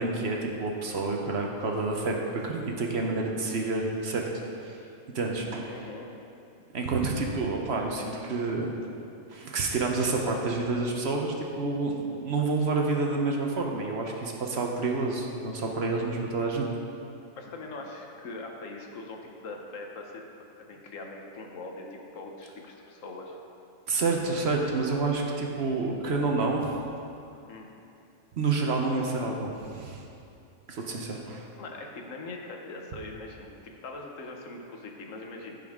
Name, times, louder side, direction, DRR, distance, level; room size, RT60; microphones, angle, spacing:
voice 1, 0.0-4.2 4.6-4.8 5.1-5.7 6.7-8.7 9.3-16.7 23.9-26.8 28.4-30.0 30.7-31.5, right 3 dB, 60° right, 1 dB, 1.1 m, -29 dB
voice 2, 5.7-6.1 17.4-23.4 27.5-27.7 31.6-35.6, left 2 dB, 90° left, 1 dB, 1.4 m, -42 dB
15.5 x 5.5 x 3.6 m, 2.7 s
omnidirectional pair, 1.3 m